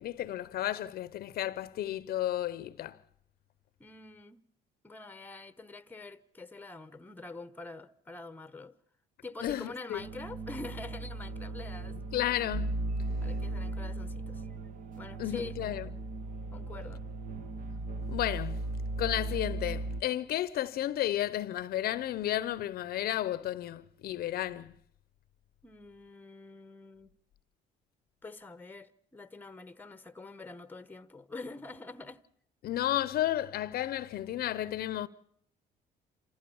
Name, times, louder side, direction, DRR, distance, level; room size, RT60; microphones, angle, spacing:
voice 1, 0.0-3.0 9.4-10.0 12.1-12.8 15.2-15.9 18.1-18.7 19.0-24.7 32.6-35.1, left 13 dB, 65° left, 0.8 m, -32 dB
voice 2, 3.8-4.5 4.8-8.7 9.2-12.0 13.2-14.4 15.0-15.6 16.5-17.0 25.6-27.1 28.2-32.2, left 3 dB, 10° left, 1.1 m, -45 dB
sound 1, 10.0-20.0, right 2 dB, 50° right, 1.6 m, -37 dB
28.0 x 15.0 x 7.0 m
cardioid pair, 110°, 17 cm